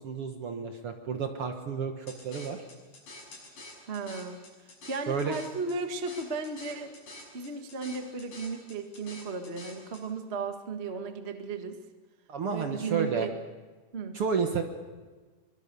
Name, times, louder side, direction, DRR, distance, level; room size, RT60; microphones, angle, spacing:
voice 1, 0.0-2.6 5.1-5.3 12.3-13.3 14.1-14.6, right 6 dB, 55° right, 5 dB, 1.8 m, -31 dB
sound 1, 2.1-10.0, left 2 dB, 80° left, 7.9 m, -48 dB
voice 2, 3.9-4.4 4.9-6.9 7.3-11.8 12.5-13.3 13.9-14.2, right 4 dB, 35° right, 5 dB, 1.1 m, -35 dB
23.5 x 23.0 x 6.8 m, 1.3 s
omnidirectional pair, 3.8 m